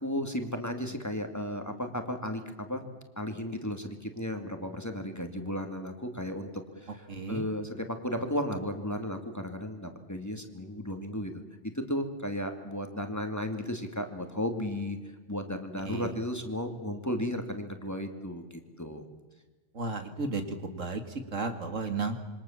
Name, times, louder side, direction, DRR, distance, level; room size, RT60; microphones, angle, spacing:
voice 1, 0.0-2.8 3.2-11.3 11.7-15.0 15.3-19.0, equal, 15° left, 5 dB, 2.4 m, -34 dB
voice 2, 7.1-7.4 15.8-16.1 19.7-20.4 20.7-21.0 21.3-22.2, right 3 dB, 85° right, 7 dB, 2.6 m, -33 dB
27.0 x 23.5 x 7.3 m, 1.3 s
omnidirectional pair, 1.3 m